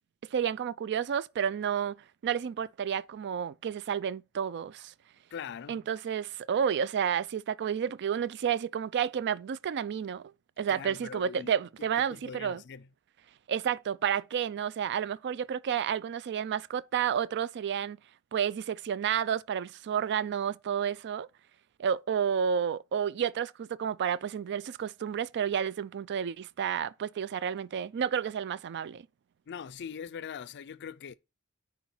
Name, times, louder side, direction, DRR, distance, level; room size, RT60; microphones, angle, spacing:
voice 1, 0.3-4.9 5.7-10.3 10.6-12.6 13.5-18.0 18.3-21.3 21.8-29.1, right 8 dB, 50° right, 0.4 m, -31 dB
voice 2, 5.3-5.9 10.7-11.5 11.8-12.9 29.5-31.1, left 7 dB, 50° left, 0.4 m, -42 dB
9.4 x 4.8 x 4.3 m
head